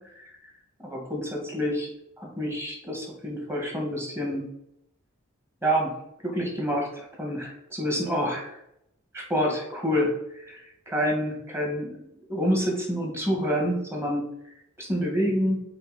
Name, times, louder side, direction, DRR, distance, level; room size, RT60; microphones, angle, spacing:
voice 1, 0.8-1.9 2.2-4.4 5.6-5.9 6.2-8.6 9.1-14.2 14.8-15.6, equal, 10° right, -1 dB, 1.8 m, -28 dB
5.6 x 4.5 x 4.2 m, 0.78 s
head